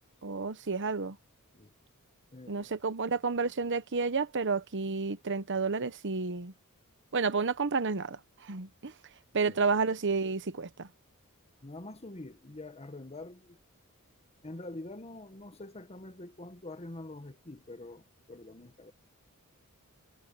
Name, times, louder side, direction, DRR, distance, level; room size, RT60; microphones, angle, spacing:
voice 1, 0.2-1.2 2.5-6.5 7.1-8.9 9.3-10.9, right 4 dB, 55° right, 1.0 m, -31 dB
voice 2, 2.3-2.7 9.4-9.7 11.6-13.6 14.4-18.9, left 2 dB, 30° left, 1.2 m, -45 dB
head